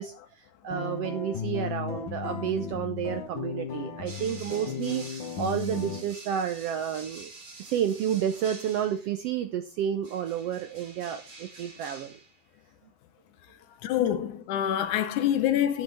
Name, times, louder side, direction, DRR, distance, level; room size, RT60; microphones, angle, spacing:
voice 1, 0.0-7.3 7.6-12.1, right 9 dB, 75° right, 1.4 m, -31 dB
sound 1, 0.7-6.0, left 6 dB, 45° left, 1.9 m, -35 dB
sound 2, 4.1-9.2 10.0-12.4, right 3 dB, 55° right, 0.5 m, -47 dB
voice 2, 13.8-15.8, left 11 dB, 75° left, 2.4 m, -26 dB
11.5 x 10.5 x 3.5 m
omnidirectional pair, 3.6 m